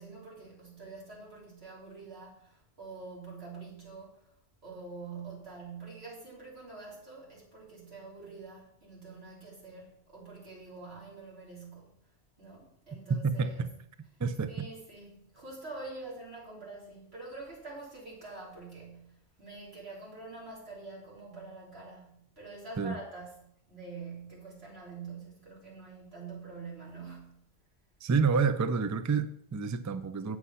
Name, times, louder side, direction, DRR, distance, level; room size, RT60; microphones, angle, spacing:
voice 1, 0.0-4.3 4.6-11.9 12.4-13.8 14.5-27.4, right 3 dB, 85° right, -5 dB, 3.7 m, -46 dB
voice 2, 13.2-13.7 14.2-14.7 22.8-23.0 28.0-30.4, right 5 dB, 30° right, 11 dB, 0.3 m, -29 dB
8.4 x 6.4 x 5.6 m, 0.70 s
omnidirectional pair, 1.0 m